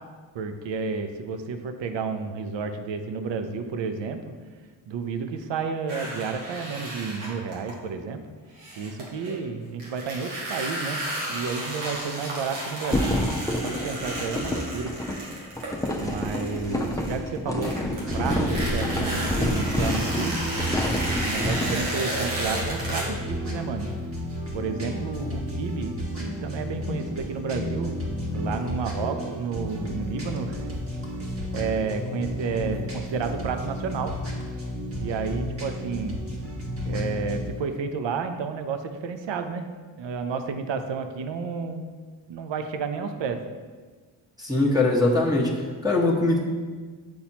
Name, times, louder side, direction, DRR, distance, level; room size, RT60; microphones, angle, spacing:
voice 1, 0.3-4.2 4.9-8.2 8.8-11.0 11.3-13.3 13.6-14.9 16.0-20.5 21.2-23.9 24.5-28.0 28.3-30.7 31.5-34.1 35.0-36.2 36.8-39.7 40.0-41.8 42.3-43.4, right 5 dB, 65° right, 8 dB, 0.7 m, -31 dB
sound 1, 5.9-7.7 8.6-9.3 9.8-17.4 17.6-23.0, right 1 dB, 90° right, 1.7 m, -33 dB
sound 2, 12.9-21.8, left 1 dB, 5° left, 0.8 m, -28 dB
sound 3, 18.0-37.5, equal, 30° right, 1.5 m, -32 dB
voice 2, 44.4-46.4, left 2 dB, 10° right, -3 dB, 1.3 m, -22 dB
8.4 x 4.2 x 2.8 m, 1.5 s
supercardioid pair, 45°, 47 cm